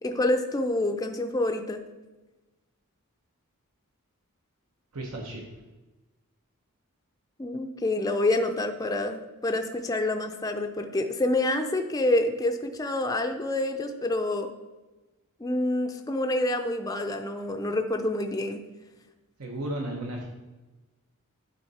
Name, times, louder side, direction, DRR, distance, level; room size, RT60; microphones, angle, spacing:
voice 1, 0.0-1.8 7.4-14.5 15.4-18.6, left 1 dB, 15° left, 5 dB, 0.4 m, -27 dB
voice 2, 4.9-5.4 19.4-20.2, right 1 dB, 80° right, -1 dB, 1.1 m, -34 dB
11.0 x 4.0 x 4.2 m, 1.1 s
head